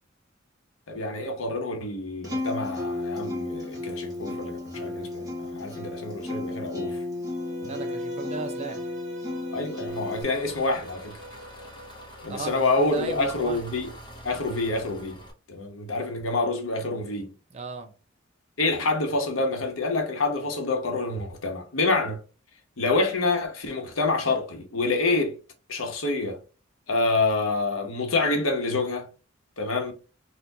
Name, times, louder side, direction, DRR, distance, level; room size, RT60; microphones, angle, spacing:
voice 1, 0.9-7.0 7.6-7.7 9.5-11.2 12.2-13.9 14.2-17.3 18.6-22.2 22.8-25.3 25.7-26.4 26.9-29.1 29.6-29.9, left 3 dB, 85° left, 0.9 m, -27 dB
Acoustic guitar, 2.2-10.2, left 2 dB, 20° right, 1.3 m, -33 dB
Bowed string instrument, 7.3-12.3, right 1 dB, 70° right, 0.8 m, -43 dB
voice 2, 7.6-8.9 12.3-13.6 17.5-17.9, right 3 dB, 35° right, 0.6 m, -36 dB
Engine, 9.9-15.3, equal, 25° left, 0.8 m, -46 dB
4.2 x 2.2 x 2.7 m
head